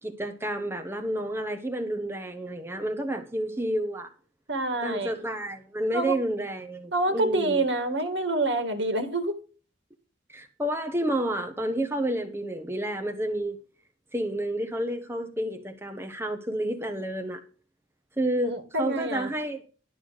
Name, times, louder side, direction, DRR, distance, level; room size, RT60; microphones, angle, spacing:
voice 1, 0.0-4.1 4.8-7.6 10.3-13.6 14.1-17.4 18.2-19.6, right 1 dB, 15° right, 1.1 m, -30 dB
voice 2, 4.5-5.1 5.9-6.2 6.9-9.4 18.4-19.3, right 2 dB, 65° right, 2.1 m, -27 dB
12.0 x 6.1 x 6.3 m
head